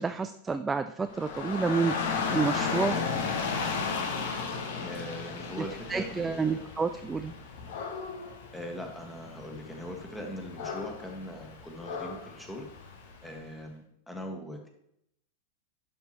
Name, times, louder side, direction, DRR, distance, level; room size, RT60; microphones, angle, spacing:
voice 1, 0.0-1.9 2.3-3.0 5.9-7.3, right 5 dB, 15° right, 9 dB, 0.4 m, -29 dB
Dog / Rain, 1.1-13.3, left 5 dB, 55° left, 1.2 m, -35 dB
voice 2, 4.8-6.7 8.5-12.7 13.2-14.7, equal, 5° left, 2 dB, 1.7 m, -41 dB
11.5 x 6.0 x 3.0 m, 0.77 s
figure-of-eight pair, 90°, 0 cm